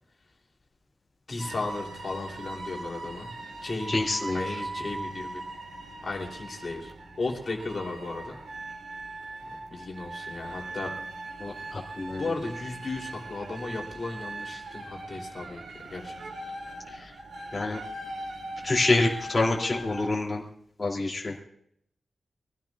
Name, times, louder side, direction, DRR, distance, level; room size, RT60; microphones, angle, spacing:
voice 1, 1.3-3.3 3.6-3.9 4.3-5.4 6.0-6.9 7.2-8.4 9.7-10.9 12.2-16.1, left 3 dB, 40° left, 0 dB, 3.2 m, -35 dB
sound 1, 1.4-20.1, right 2 dB, 70° right, 2.8 m, -40 dB
voice 2, 3.9-4.6 11.4-12.3 16.9-17.1 17.5-17.8 18.6-20.4 20.8-21.3, left 2 dB, 20° left, -4 dB, 2.8 m, -27 dB
24.0 x 16.0 x 2.4 m, 0.69 s
wide cardioid pair, 180°, 0 cm